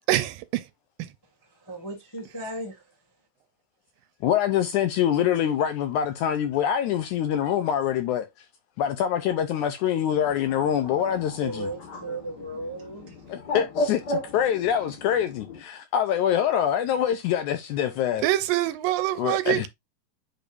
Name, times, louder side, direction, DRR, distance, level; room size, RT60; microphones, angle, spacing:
voice 1, 0.1-0.6 18.2-19.7, right 15 dB, 80° right, 2.3 m, -24 dB
voice 2, 1.6-2.8 11.4-13.1, right 2 dB, 20° left, 0.6 m, -36 dB
voice 3, 4.2-8.3 8.8-11.7 13.3-18.2 19.2-19.7, left 9 dB, 80° left, 1.9 m, -25 dB
Bird, 10.1-15.6, left 1 dB, 45° left, 1.4 m, -35 dB
8.9 x 5.1 x 2.6 m
omnidirectional pair, 4.0 m